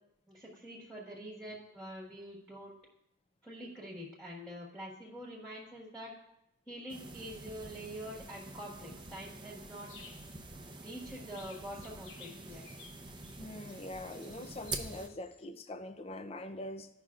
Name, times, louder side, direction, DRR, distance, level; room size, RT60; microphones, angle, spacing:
voice 1, 0.3-2.8 3.4-6.1 6.7-9.9 10.8-12.6, equal, ahead, -3 dB, 1.5 m, -45 dB
sound 1, 6.9-15.1, right 3 dB, 20° right, 0.6 m, -46 dB
sound 2, 9.9-10.4 11.0-11.1 11.3-15.5, left 5 dB, 65° left, 1.0 m, -56 dB
voice 2, 13.4-16.9, left 1 dB, 30° left, 9 dB, 0.5 m, -43 dB
16.0 x 5.6 x 2.4 m, 0.84 s
head